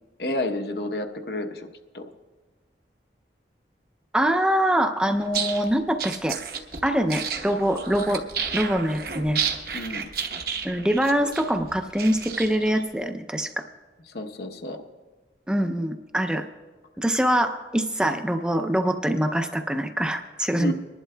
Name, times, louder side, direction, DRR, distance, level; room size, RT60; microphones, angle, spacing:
voice 1, 0.2-1.7 1.9-2.0 9.7-10.1 14.1-14.8 20.6-20.7, left 1 dB, 65° left, 5 dB, 0.8 m, -30 dB
voice 2, 4.1-6.4 6.8-8.2 8.5-9.4 10.6-13.7 15.5-16.5 17.0-20.7, equal, 5° right, 6 dB, 0.4 m, -24 dB
sound 1, 5.2-12.8, right 6 dB, 55° right, 1.0 m, -32 dB
25.5 x 11.0 x 2.2 m, 1.3 s
head